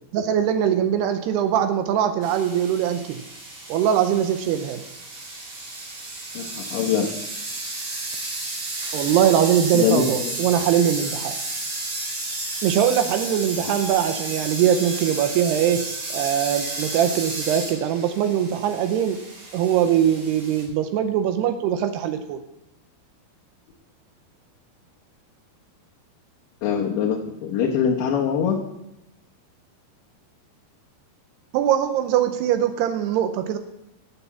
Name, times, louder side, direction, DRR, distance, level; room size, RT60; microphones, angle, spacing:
voice 1, 0.1-3.2 3.7-4.8 8.9-11.4 12.6-15.8 16.1-19.2 19.5-22.4 31.5-33.6, right 9 dB, 85° right, 8 dB, 2.7 m, -22 dB
sound 1, 2.2-20.6, right 2 dB, 50° right, 4.3 m, -32 dB
voice 2, 6.3-7.1 9.7-10.4 13.7-13.8 26.6-28.6, left 7 dB, 70° left, -3 dB, 2.4 m, -23 dB
10.5 x 6.9 x 7.0 m, 0.90 s
omnidirectional pair, 4.8 m